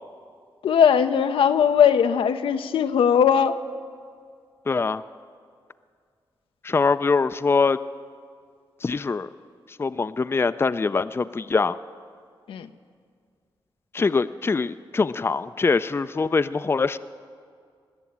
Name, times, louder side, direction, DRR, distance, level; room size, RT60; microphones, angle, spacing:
voice 1, 0.6-3.5 12.5-12.7, left 8 dB, 85° left, 9 dB, 0.6 m, -19 dB
voice 2, 4.7-5.0 6.6-7.8 8.8-9.3 9.8-11.8 13.9-17.0, left 4 dB, 25° left, 13 dB, 0.4 m, -23 dB
19.5 x 7.0 x 8.7 m, 2.1 s
cardioid pair, 60°, 9 cm